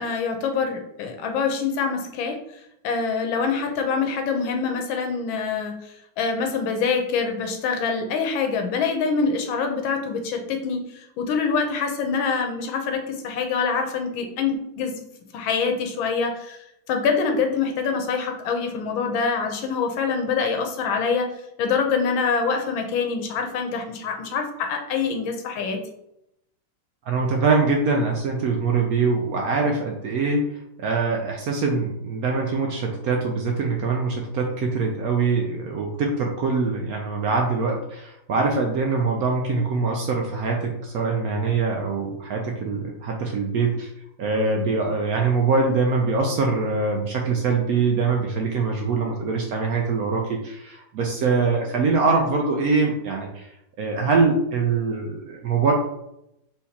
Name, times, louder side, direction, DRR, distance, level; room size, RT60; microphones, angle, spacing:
voice 1, 0.0-2.4 2.8-5.8 6.2-10.8 11.2-14.9 15.3-16.6 16.9-21.3 21.6-25.8, left 5 dB, 80° left, 4 dB, 1.5 m, -25 dB
voice 2, 27.0-30.4 30.8-43.9 44.2-53.5 53.8-55.7, right 4 dB, 80° right, 1 dB, 0.8 m, -23 dB
4.4 x 3.4 x 2.8 m, 0.81 s
omnidirectional pair, 2.1 m